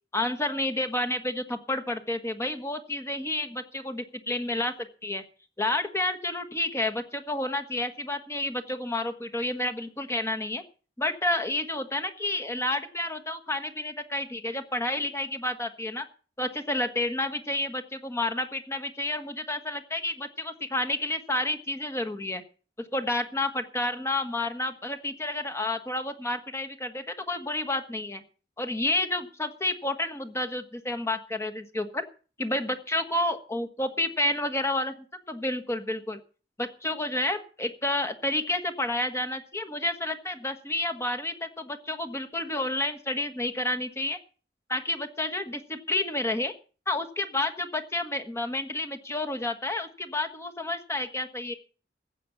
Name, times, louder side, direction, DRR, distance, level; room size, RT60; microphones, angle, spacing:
voice 1, 0.1-4.7 5.0-5.2 5.6-10.6 11.0-16.0 16.4-22.4 22.8-28.2 28.6-32.0 32.4-34.9 35.3-36.2 36.6-44.2 44.7-46.5 46.9-51.5, left 1 dB, 15° left, 8 dB, 1.4 m, -30 dB
14.5 x 8.3 x 7.2 m, 0.38 s
head